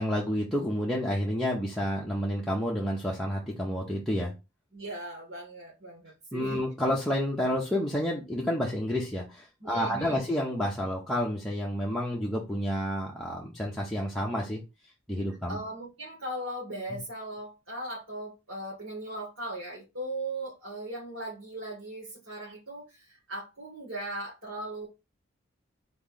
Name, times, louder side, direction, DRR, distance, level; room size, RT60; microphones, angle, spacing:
voice 1, 0.0-4.3 6.3-14.6 15.1-15.6 16.9-17.0, equal, ahead, 0.8 m, -30 dB
voice 2, 4.7-6.5 9.6-10.2 15.5-24.9, right 1 dB, 75° right, 2.2 m, -38 dB
4.0 x 3.1 x 3.8 m
head